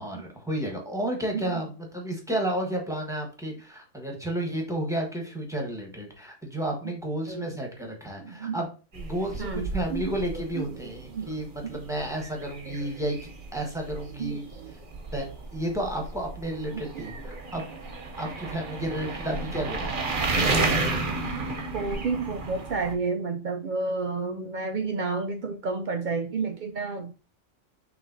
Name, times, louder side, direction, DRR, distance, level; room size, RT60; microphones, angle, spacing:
voice 1, 0.0-14.8 15.1-17.7 18.2-19.9, right 1 dB, 5° right, 1 dB, 1.0 m, -32 dB
voice 2, 8.2-8.6 9.4-10.0 11.1-11.3 11.6-11.8 14.2-14.7 16.7-17.0 20.7-21.0 21.7-27.1, right 4 dB, 85° right, 5 dB, 0.4 m, -31 dB
sound 1, 8.9-22.9, right 3 dB, 45° right, 0.9 m, -32 dB
5.9 x 3.2 x 2.6 m, 0.34 s
omnidirectional pair, 1.4 m